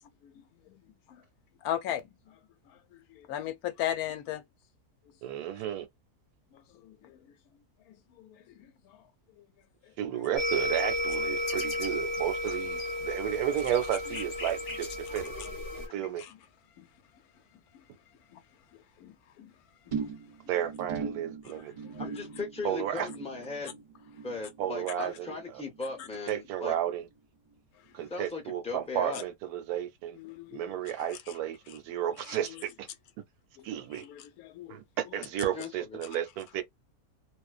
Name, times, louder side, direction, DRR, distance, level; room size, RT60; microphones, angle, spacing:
voice 1, 0.2-0.7 1.6-2.0 3.2-4.4 6.8-6.9 8.2-8.3 16.8-16.9 17.7-17.8 18.3-18.4 19.0-19.5 19.9-20.0 30.2-30.6 34.0-34.7, left 11 dB, 75° left, 1.0 m, -36 dB
voice 2, 5.2-5.9 10.0-15.4 15.8-16.2 20.5-21.7 22.6-23.1 24.6-25.6 26.3-27.1 27.9-30.2 30.5-32.9 33.6-34.0 34.7-36.6, right 11 dB, 80° right, 1.1 m, -33 dB
sound 1, 10.3-15.9, left 1 dB, 45° left, 0.8 m, -33 dB
sound 2, 19.9-26.5 26.8-27.2 27.5-27.6, right 5 dB, 45° right, 0.7 m, -41 dB
voice 3, 22.0-23.8 24.2-26.7 28.1-29.3 35.5-35.7, left 3 dB, 5° left, 0.5 m, -38 dB
2.4 x 2.1 x 2.3 m
omnidirectional pair, 1.6 m